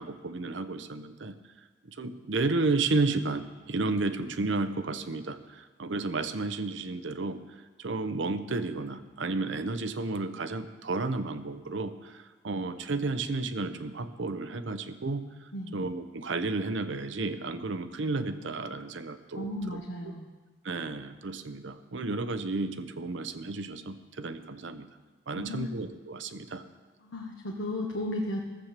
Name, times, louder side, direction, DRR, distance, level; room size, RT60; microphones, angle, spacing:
voice 1, 0.0-1.4 1.8-7.4 7.8-19.8 20.6-24.9 25.3-26.6, right 3 dB, 80° right, 10 dB, 0.8 m, -32 dB
voice 2, 19.3-20.4 25.3-25.7 27.0-28.5, left 1 dB, 80° left, 0 dB, 1.2 m, -35 dB
15.0 x 7.4 x 6.7 m, 1.3 s
head